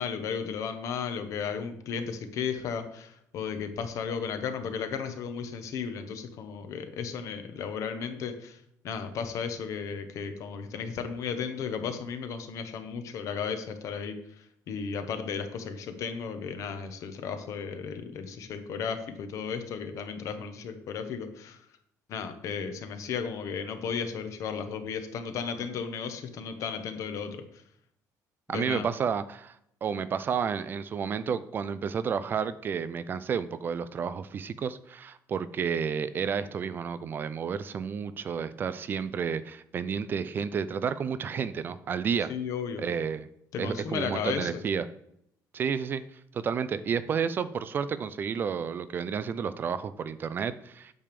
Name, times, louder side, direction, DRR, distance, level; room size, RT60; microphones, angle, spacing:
voice 1, 0.0-8.6 8.8-21.6 22.1-27.4 28.5-28.9 42.3-42.8 43.5-44.6, left 6 dB, 55° left, 8 dB, 1.0 m, -34 dB
voice 2, 28.5-29.6 29.8-42.3 42.8-43.3 43.6-44.8 45.5-46.0 46.3-50.9, right 6 dB, 30° right, 14 dB, 0.4 m, -31 dB
8.7 x 3.5 x 6.7 m, 0.74 s
cardioid pair, 165°, 6 cm